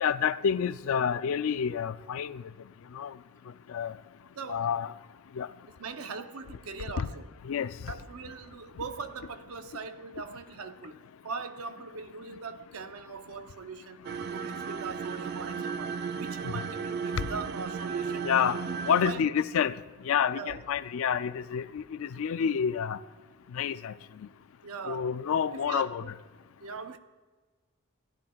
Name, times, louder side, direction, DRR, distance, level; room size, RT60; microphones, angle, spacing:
voice 1, 0.0-2.4 3.0-3.1 3.7-3.9 4.5-4.9 5.4-5.5 7.0-7.1 7.5-7.7 18.2-18.6 18.9-19.7 20.1-23.0 23.5-23.9 24.9-26.0, left 7 dB, 70° left, 0.3 m, -28 dB
voice 2, 4.3-4.7 5.8-7.3 7.9-14.0 14.3-18.3 18.6-18.8 19.0-19.3 20.3-20.6 24.6-25.1 25.5-26.1 26.6-27.0, right 4 dB, 80° right, 0.7 m, -40 dB
sound 1, 14.0-19.1, right 6 dB, 45° right, 0.3 m, -35 dB
16.5 x 10.5 x 2.3 m
head